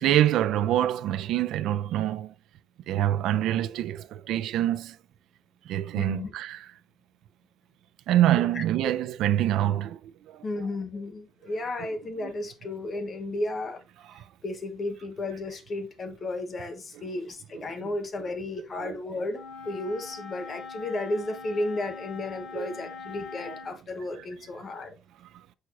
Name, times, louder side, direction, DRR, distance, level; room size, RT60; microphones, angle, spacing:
voice 1, 0.0-2.3 2.9-5.0 5.7-6.6 8.1-10.0 10.3-10.4 14.2-14.3 18.8-18.9 22.5-22.7, right 12 dB, 80° right, 0.4 m, -25 dB
voice 2, 5.9-6.3 8.4-8.6 10.4-13.8 14.1-24.9, left 2 dB, 30° left, 1.0 m, -33 dB
Wind instrument woodwind instrument, 19.3-23.8, left 5 dB, 55° left, 2.5 m, -42 dB
6.4 x 5.8 x 2.5 m
cardioid pair, 165°, 0 cm